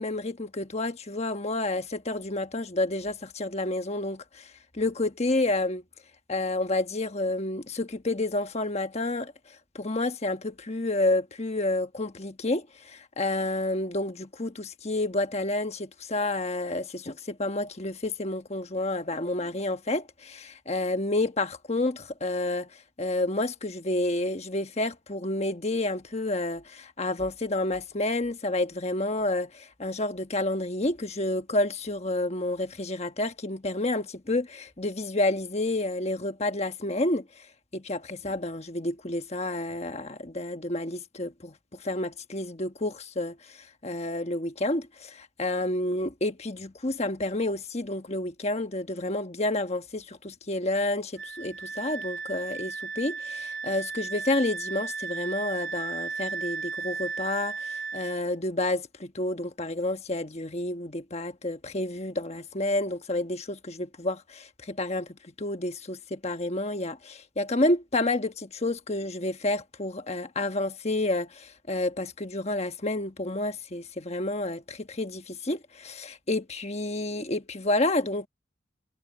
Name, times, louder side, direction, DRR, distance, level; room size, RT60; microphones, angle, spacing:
voice 1, 0.0-5.8 6.3-9.3 9.7-22.7 23.0-37.3 37.7-41.5 41.8-43.6 43.8-78.3, left 2 dB, 35° left, 1.2 m, -30 dB
Wind instrument woodwind instrument, 51.2-58.2, right 5 dB, 65° right, 1.1 m, -35 dB
head